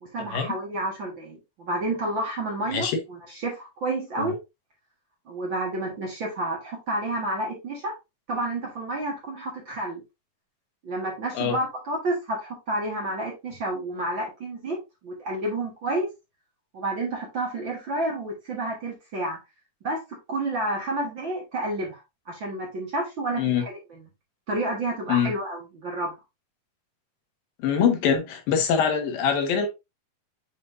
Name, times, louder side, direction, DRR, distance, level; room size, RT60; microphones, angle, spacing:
voice 1, 0.0-4.4 5.3-7.9 8.3-10.0 10.8-14.8 15.0-16.1 16.7-19.4 19.8-20.0 20.3-22.0 22.3-24.0 24.5-26.2, right 1 dB, 45° right, 1.9 m, -30 dB
voice 2, 27.6-29.7, left 7 dB, 80° left, 3.0 m, -23 dB
7.7 x 4.9 x 2.6 m
omnidirectional pair, 4.0 m